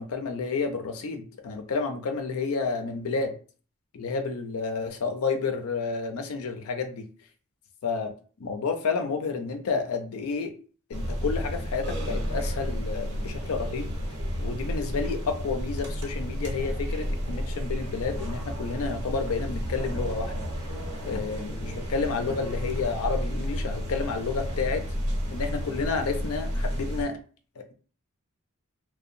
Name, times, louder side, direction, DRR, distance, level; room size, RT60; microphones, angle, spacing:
voice 1, 0.0-3.4 3.9-7.0 7.8-8.1 8.4-10.5 10.9-13.9 14.4-20.4 21.0-24.8 25.3-27.2 27.6-27.7, left 4 dB, 75° left, 5 dB, 0.4 m, -30 dB
sound 1, 10.9-27.0, equal, 80° right, 1.0 m, -31 dB
2.7 x 2.1 x 2.5 m, 0.39 s
head